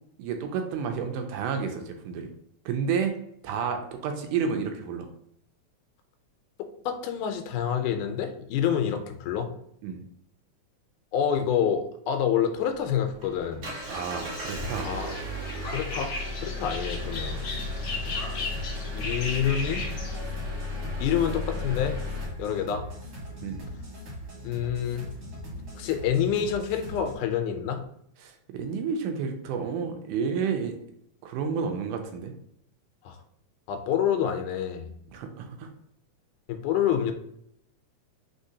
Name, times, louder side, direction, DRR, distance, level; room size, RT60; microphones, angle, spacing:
voice 1, 0.2-2.3 2.7-3.1 3.4-5.1 9.8-10.0 13.9-14.9 23.4-23.6 28.2-30.8 31.2-32.3 35.1-35.7, right 6 dB, 85° right, 5 dB, 2.2 m, -30 dB
voice 2, 6.9-9.5 11.1-13.7 14.8-15.2 15.7-16.1 16.4-17.4 18.9-19.9 21.0-22.0 22.4-22.8 24.4-25.1 25.8-27.8 33.1-33.2 33.7-34.9 36.5-37.1, left 9 dB, 85° left, 6 dB, 2.2 m, -27 dB
Engine, 12.9-22.3, left 2 dB, 70° right, 0.9 m, -35 dB
sound 1, 13.8-20.2, left 3 dB, 70° left, 1.2 m, -37 dB
sound 2, 16.9-27.2, equal, 50° right, 1.7 m, -41 dB
4.9 x 3.7 x 2.7 m, 0.72 s
omnidirectional pair, 3.5 m